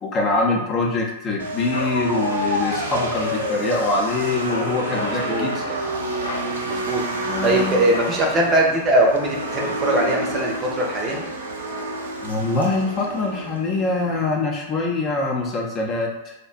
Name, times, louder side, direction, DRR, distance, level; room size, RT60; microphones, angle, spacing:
voice 1, 0.0-5.8 7.2-7.9 12.2-16.3, left 3 dB, 30° left, -1 dB, 0.6 m, -24 dB
sound 1, 1.4-14.4, right 2 dB, 80° right, 0.4 m, -30 dB
Bark, 1.7-3.8 4.5-5.2 5.5-5.8 6.1-6.5 7.9-8.2 8.7-8.8 9.1-9.6, left 3 dB, 75° left, 0.3 m, -29 dB
voice 2, 5.0-5.6 6.6-7.0 7.4-11.2, right 1 dB, 30° right, -1 dB, 0.6 m, -21 dB
2.6 x 2.1 x 2.4 m, 0.94 s
figure-of-eight pair, 95°, 0 cm